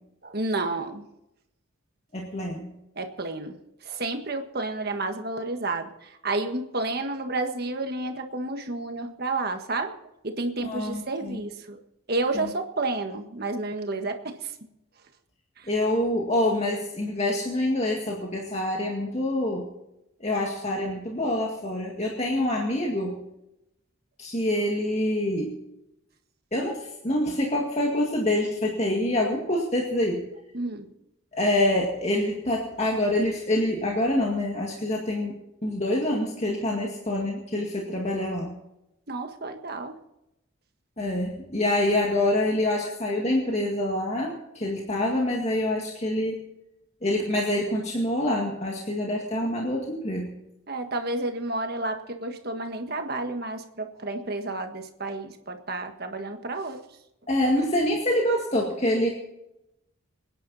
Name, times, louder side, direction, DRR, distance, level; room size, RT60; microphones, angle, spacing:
voice 1, 0.2-1.1 2.9-3.6 3.8-9.9 10.2-11.8 12.1-14.5 15.6-15.7 30.5-30.9 39.1-40.0 50.7-56.8, right 2 dB, 50° right, 5 dB, 1.6 m, -31 dB
voice 2, 2.1-2.7 10.6-11.4 12.3-12.5 15.7-19.7 20.2-23.2 24.2-25.5 26.5-30.2 31.4-35.4 35.6-38.6 41.0-46.4 47.0-50.3 57.3-59.1, left 1 dB, 30° left, -1 dB, 2.0 m, -26 dB
25.0 x 10.0 x 4.2 m, 0.87 s
head